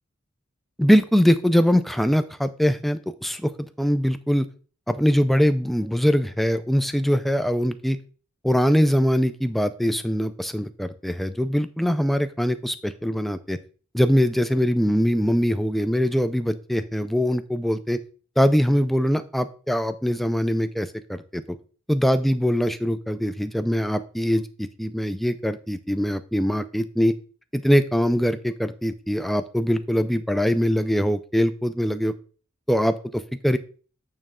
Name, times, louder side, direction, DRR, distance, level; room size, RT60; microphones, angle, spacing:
voice 1, 0.8-3.5 3.8-4.5 4.9-8.0 8.4-13.6 13.9-18.0 18.4-21.6 21.9-27.1 27.5-32.1 32.7-33.6, equal, ahead, 11 dB, 0.3 m, -22 dB
8.8 x 3.1 x 3.7 m, 0.40 s
head